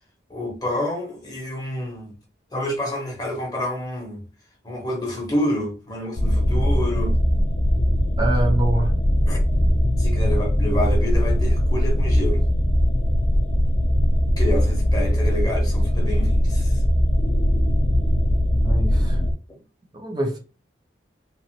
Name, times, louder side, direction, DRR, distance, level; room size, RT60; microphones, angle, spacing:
voice 1, 0.3-2.2 2.5-4.2 4.6-7.2 9.3-9.4 10.0-12.5 14.4-16.8 19.5-19.6, left 1 dB, 20° left, 0.9 m, -28 dB
sound 1, 6.2-19.3, equal, 40° left, 0.4 m, -20 dB
voice 2, 8.2-8.9 18.6-19.2 19.9-20.4, right 1 dB, 25° right, 0.6 m, -24 dB
3.0 x 2.4 x 2.8 m
head